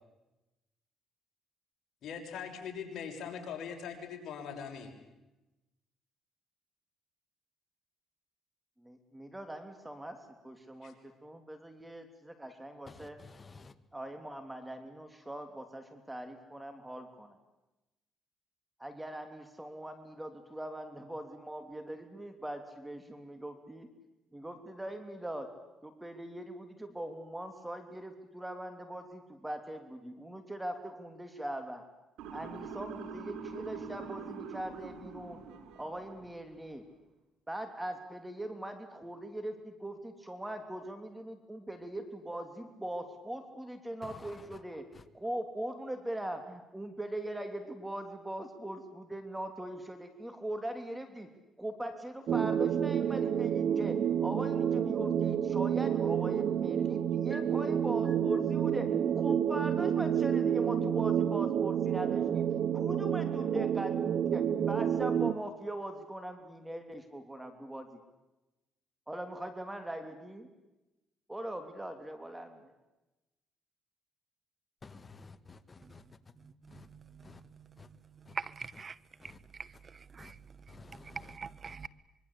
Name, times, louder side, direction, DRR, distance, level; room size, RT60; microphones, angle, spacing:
voice 1, 2.0-4.9 10.8-10.9, left 7 dB, 65° left, 6.4 m, -41 dB
voice 2, 8.8-10.2 10.4-10.9 11.2-13.2 13.9-17.4 18.8-23.9 24.3-25.5 25.8-31.8 32.3-35.4 35.8-36.8 37.5-44.9 45.1-51.3 51.6-62.5 62.7-63.9 64.3-68.0 69.1-70.5 71.3-72.6, right 1 dB, 10° right, 3.2 m, -41 dB
voice 3, 13.3-13.7 74.8-75.6 75.9-76.0 76.7-76.9 77.2-77.4 79.2-79.4 80.2-80.3 80.7-81.2, left 4 dB, 30° left, 1.9 m, -52 dB
Motor vehicle (road) / Siren, 32.2-36.3, right 5 dB, 85° right, 4.6 m, -44 dB
sound 1, 52.3-65.3, right 9 dB, 60° right, 1.0 m, -29 dB
voice 4, 76.7-77.8 78.2-79.0 79.2-79.3 79.6-80.3 81.0-81.9, right 5 dB, 35° right, 1.3 m, -44 dB
25.5 x 23.5 x 8.6 m
cardioid pair, 90°, 0 cm